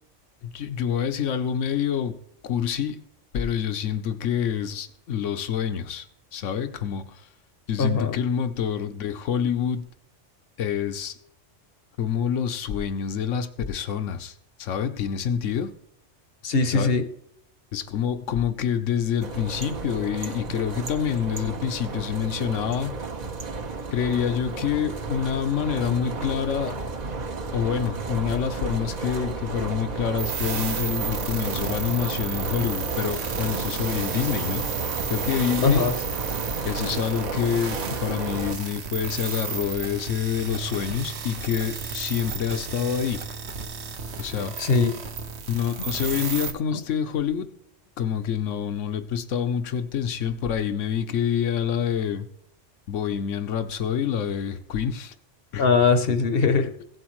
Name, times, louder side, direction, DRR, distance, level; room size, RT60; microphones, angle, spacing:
voice 1, 0.4-2.2 2.4-3.0 3.3-6.1 6.3-7.3 7.7-9.9 10.6-11.2 12.0-15.7 16.7-16.9 17.7-22.9 23.9-26.8 27.5-34.7 35.1-35.9 36.6-43.2 44.2-44.5 45.5-47.5 48.0-52.3 52.9-55.1 55.5-55.7, left 8 dB, 85° left, 1.2 m, -27 dB
voice 2, 7.8-8.1 16.4-17.1 35.6-35.9 44.6-44.9 55.6-56.7, left 4 dB, 55° left, 0.9 m, -20 dB
sound 1, 19.2-38.5, right 4 dB, 40° right, 0.8 m, -32 dB
sound 2, 30.2-46.5, right 5 dB, 65° right, 1.2 m, -33 dB
16.5 x 7.9 x 3.1 m
omnidirectional pair, 1.3 m